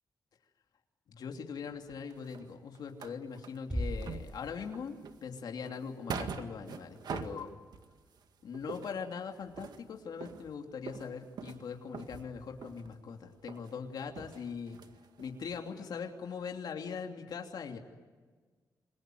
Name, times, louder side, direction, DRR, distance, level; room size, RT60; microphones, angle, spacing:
voice 1, 1.1-7.6 8.4-14.8 15.2-17.8, left 6 dB, 70° left, 3 dB, 3.0 m, -41 dB
sound 1, 1.6-3.7 4.0-8.2 8.5-13.1 13.5-13.7 14.1-15.6 15.9-16.0 16.4-16.5, right 6 dB, 80° right, 1.9 m, -44 dB
Bass drum, 3.7-5.1, equal, 10° right, 4.1 m, -37 dB
27.5 x 23.0 x 9.4 m, 1.5 s
wide cardioid pair, 150°, 7 cm